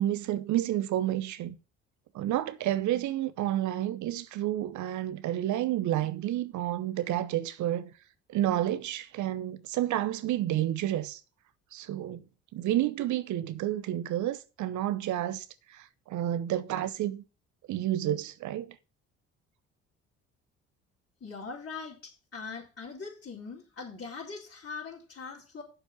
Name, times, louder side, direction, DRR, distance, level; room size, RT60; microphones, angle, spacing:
voice 1, 0.0-1.6 2.1-7.9 8.3-11.2 11.7-12.2 12.5-17.2 17.7-18.8, right 13 dB, 60° right, 0.9 m, -30 dB
voice 2, 21.2-25.6, left 4 dB, 40° left, 4.2 m, -41 dB
8.2 x 6.9 x 6.0 m
hypercardioid pair, 55°, 34 cm